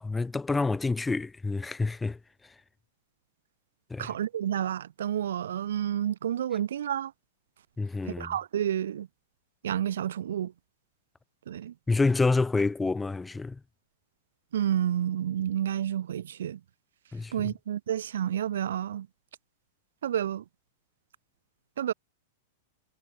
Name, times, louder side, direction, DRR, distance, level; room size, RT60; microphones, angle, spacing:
voice 1, 0.0-2.2 3.9-4.1 7.8-8.3 11.9-13.6 17.1-17.5, left 3 dB, 10° left, 2.3 m, -28 dB
voice 2, 4.0-7.1 8.1-9.1 9.6-10.5 11.5-11.7 14.5-16.6 17.3-19.1 20.0-20.4 21.8-21.9, right 10 dB, 85° right, 2.1 m, -30 dB
supercardioid pair, 155°, 0 cm